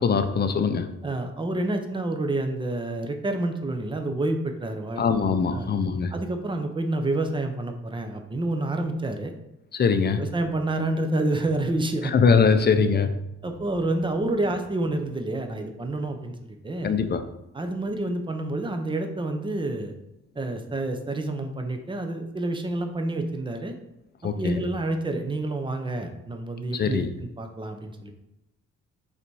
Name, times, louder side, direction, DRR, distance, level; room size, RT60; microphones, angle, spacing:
voice 1, 0.0-0.9 5.0-6.1 9.7-10.2 12.1-13.2 16.8-17.2 24.2-24.6 26.8-27.1, left 5 dB, 35° left, 0.5 m, -22 dB
voice 2, 1.0-5.1 5.5-5.7 6.1-9.3 10.2-12.1 12.9-13.0 13.4-16.9 17.5-19.9 20.3-23.7 24.2-27.0 27.4-28.1, right 2 dB, 15° right, 0.7 m, -28 dB
5.8 x 4.1 x 4.7 m
wide cardioid pair, 155°, 31 cm